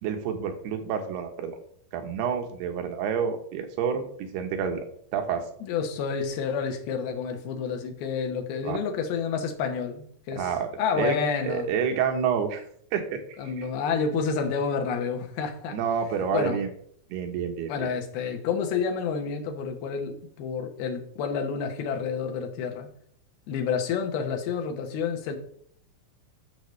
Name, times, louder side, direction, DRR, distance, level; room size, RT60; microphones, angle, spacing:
voice 1, 0.0-1.6 1.9-4.8 5.1-5.4 8.6-8.8 10.3-10.7 11.0-11.2 11.4-12.6 12.9-13.7 15.7-16.7 17.1-17.9, right 7 dB, 85° right, 3.1 m, -28 dB
voice 2, 5.6-10.5 10.8-11.7 13.4-15.8 16.3-16.6 17.7-22.9 23.5-25.4, left 6 dB, 75° left, 2.9 m, -29 dB
10.5 x 6.6 x 3.2 m
omnidirectional pair, 4.6 m